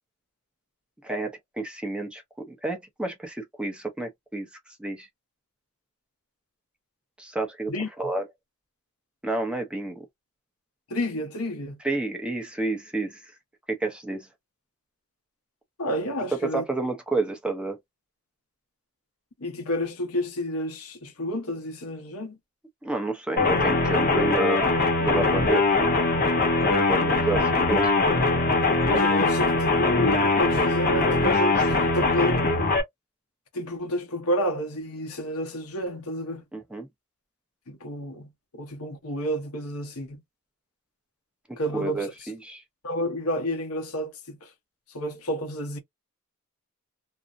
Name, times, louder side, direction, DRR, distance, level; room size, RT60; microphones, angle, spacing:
voice 1, 1.0-4.5 4.8-5.1 7.2-7.7 8.0-8.2 9.2-10.1 11.8-13.3 13.7-14.3 16.4-17.8 22.8-24.7 25.0-25.6 26.7-27.9 36.5-36.9 41.5-42.6, right 2 dB, 5° right, 0.5 m, -30 dB
voice 2, 10.9-11.8 15.8-16.6 19.4-22.4 28.8-32.4 33.5-36.4 37.7-40.2 41.6-42.1 42.8-44.5 44.9-45.8, equal, 85° left, 0.8 m, -30 dB
sound 1, 23.4-32.8, left 3 dB, 45° left, 0.8 m, -22 dB
2.6 x 2.0 x 2.4 m
head